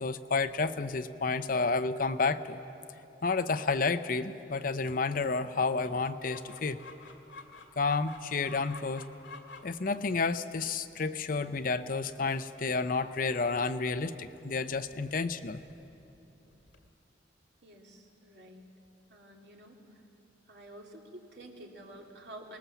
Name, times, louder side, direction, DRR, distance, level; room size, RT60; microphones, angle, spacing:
voice 1, 0.0-2.6 3.2-6.8 7.8-9.0 9.6-15.6, left 4 dB, 50° left, 11 dB, 0.7 m, -30 dB
Chicken rooster, 5.8-16.9, left 3 dB, 85° left, 2.1 m, -53 dB
voice 2, 17.6-18.6 19.1-19.8 20.5-22.6, right 1 dB, 70° right, 0 dB, 2.7 m, -49 dB
25.0 x 20.0 x 7.1 m, 3.0 s
head